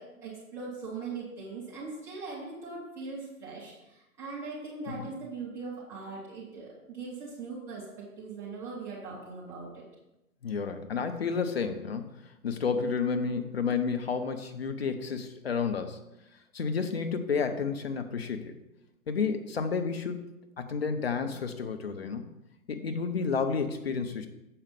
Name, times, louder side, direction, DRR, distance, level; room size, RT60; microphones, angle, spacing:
voice 1, 0.0-9.8, right 4 dB, 5° right, -7 dB, 0.7 m, -40 dB
voice 2, 10.4-12.1 12.4-16.0 16.5-18.5 19.1-20.2 20.6-22.2 22.7-24.3, left 5 dB, 45° left, 7 dB, 0.7 m, -31 dB
7.1 x 5.0 x 5.2 m, 0.94 s
figure-of-eight pair, 130°, 45 cm